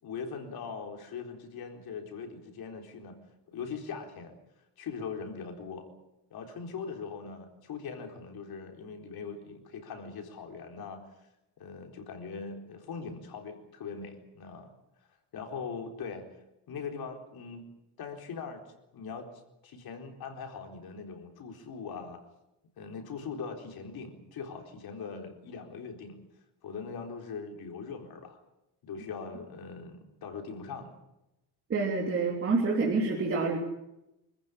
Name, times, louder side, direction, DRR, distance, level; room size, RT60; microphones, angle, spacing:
voice 1, 0.0-3.2 3.5-4.3 4.8-5.9 6.3-11.3 11.6-14.7 15.3-16.4 16.7-17.6 18.0-18.7 18.9-19.3 19.6-22.2 22.8-26.2 26.6-28.4 28.8-30.9, left 5 dB, 65° left, 3 dB, 4.2 m, -41 dB
voice 2, 31.7-33.6, right 4 dB, 35° right, -2 dB, 3.3 m, -27 dB
26.5 x 14.5 x 10.0 m, 0.90 s
cardioid pair, 180°, 39 cm